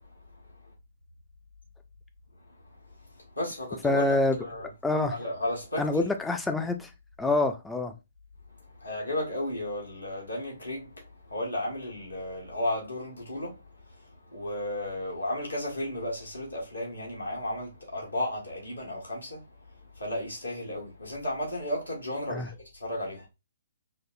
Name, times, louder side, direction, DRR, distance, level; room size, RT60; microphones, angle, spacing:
voice 1, 3.1-4.0 4.4-4.7 5.2-5.8 8.8-11.0 11.3-13.6 13.9-19.4 19.9-23.3, left 1 dB, 90° left, 1.5 m, -34 dB
voice 2, 3.8-4.4 4.8-5.2 5.8-6.9 7.2-7.9 22.3-22.5, left 2 dB, 5° left, 0.4 m, -26 dB
4.9 x 2.0 x 2.5 m
figure-of-eight pair, 130°, 0 cm